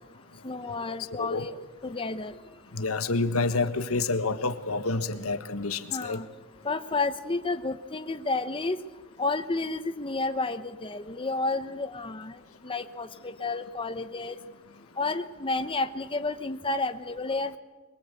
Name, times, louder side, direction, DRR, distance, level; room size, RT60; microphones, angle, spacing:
voice 1, 0.4-1.5 1.8-2.3 5.9-6.3 6.6-8.8 9.2-12.3 12.6-14.4 15.0-17.6, left 3 dB, 25° left, 9 dB, 0.9 m, -31 dB
voice 2, 2.7-6.2, left 3 dB, 90° left, 9 dB, 1.6 m, -28 dB
24.0 x 22.0 x 8.4 m, 1.2 s
head